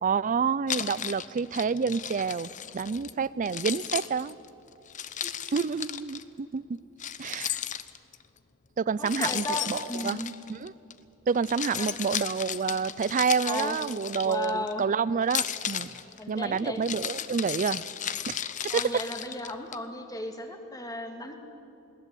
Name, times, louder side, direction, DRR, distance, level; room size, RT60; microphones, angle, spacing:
voice 1, 0.0-4.4 5.5-6.6 7.2-7.6 8.8-10.2 10.5-10.7 11.3-16.0 16.3-17.8 18.3-18.4, right 5 dB, 35° right, 20 dB, 0.4 m, -28 dB
Keys jangling, 0.7-3.1 3.5-6.2 7.0-8.2 9.1-10.9 11.3-14.7 15.2-19.8, left 9 dB, 35° left, 0.7 m, -34 dB
voice 2, 5.2-5.7 9.0-10.3 11.8-11.9 13.5-13.8 14.2-14.8 16.2-16.8 18.7-21.4, left 1 dB, 15° left, 4 dB, 2.1 m, -35 dB
21.0 x 18.5 x 8.5 m, 2.8 s
head